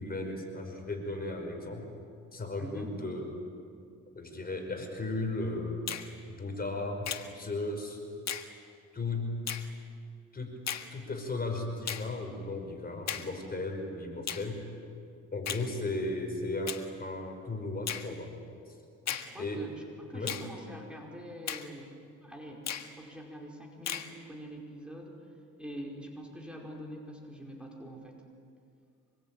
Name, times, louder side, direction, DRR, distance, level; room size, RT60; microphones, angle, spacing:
voice 1, 0.0-1.9 2.3-3.3 4.1-5.8 6.3-8.0 8.9-9.4 10.3-10.5 10.9-14.6 15.3-18.3 18.7-18.8 19.4-19.6 20.1-20.4, left 2 dB, 30° left, 3 dB, 5.3 m, -35 dB
voice 2, 2.6-2.9 19.1-19.7 20.0-28.2, equal, 5° right, -1 dB, 5.1 m, -45 dB
Finger snapping, 5.9-6.1 7.0-7.3 8.3-8.5 9.5-9.7 10.7-10.9 11.9-12.1 13.1-13.3 14.3-14.5 15.4-15.7 16.7-16.8 17.9-18.1 19.1-19.3 20.3-20.5 21.5-21.7 22.7-22.9 23.9-24.1, left 9 dB, 60° left, 1.7 m, -35 dB
26.0 x 22.5 x 9.1 m, 2.4 s
cardioid pair, 90°, 30 cm